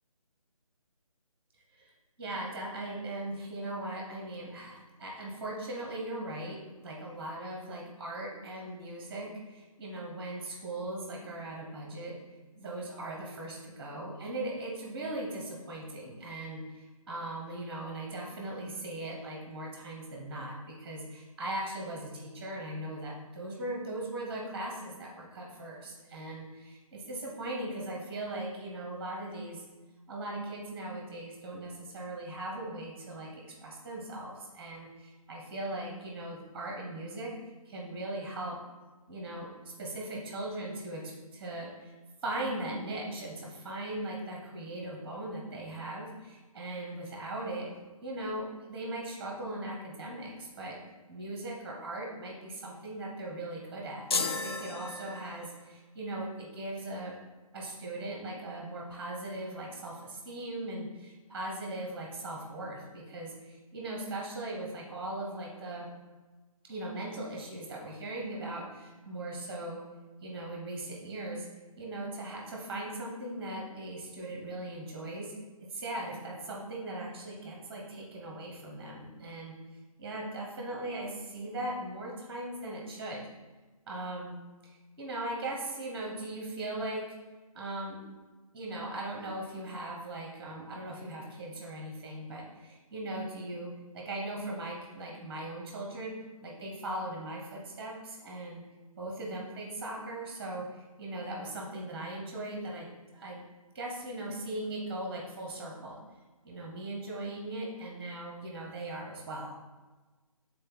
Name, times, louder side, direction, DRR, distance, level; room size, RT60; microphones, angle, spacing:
voice 1, 2.2-12.2 12.5-29.6 30.1-37.4 37.7-38.6 39.1-41.9 42.2-47.7 48.0-50.8 51.1-57.1 57.5-65.9 66.7-69.8 70.2-71.5 71.8-75.3 75.6-79.5 80.0-83.3 83.9-87.1 87.5-88.0 88.5-98.6 99.0-103.4 103.7-106.0 106.4-109.5, right 1 dB, 5° right, -1 dB, 0.8 m, -39 dB
sound 1, 54.1-55.7, left 3 dB, 40° left, 0.4 m, -33 dB
6.6 x 3.9 x 3.9 m, 1.2 s
figure-of-eight pair, 150°, 19 cm